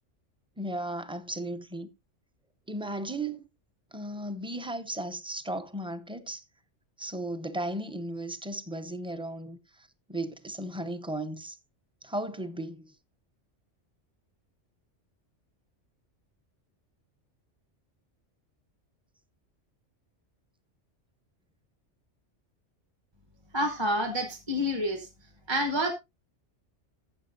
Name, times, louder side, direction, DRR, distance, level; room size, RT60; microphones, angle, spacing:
voice 1, 0.6-1.9 2.7-3.4 3.9-6.4 7.0-11.6 12.0-12.9, right 1 dB, 5° right, 0.6 m, -35 dB
voice 2, 23.5-25.1 25.5-25.9, equal, 25° right, 1.1 m, -28 dB
14.0 x 7.5 x 2.6 m
omnidirectional pair, 1.2 m